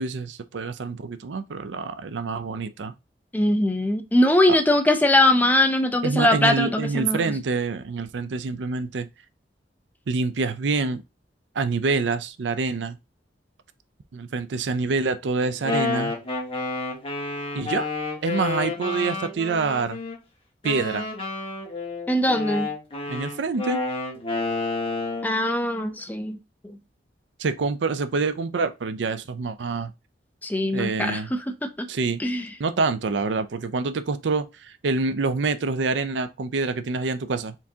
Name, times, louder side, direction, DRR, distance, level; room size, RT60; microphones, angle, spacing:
voice 1, 0.0-2.9 4.5-4.6 6.0-9.1 10.1-11.0 11.6-13.0 14.1-16.1 17.5-17.9 18.2-20.0 20.6-21.1 23.1-23.8 27.4-29.9 30.7-31.3 31.9-32.2 32.6-37.5, right 4 dB, 85° right, 0.5 m, -26 dB
voice 2, 3.3-7.3 22.1-22.7 25.2-26.4 26.6-26.8 30.4-31.9 32.2-32.5, left 1 dB, 10° left, 0.5 m, -21 dB
Wind instrument woodwind instrument, 15.4-20.2 20.6-25.3, left 3 dB, 30° left, 1.4 m, -30 dB
4.6 x 3.5 x 2.8 m
head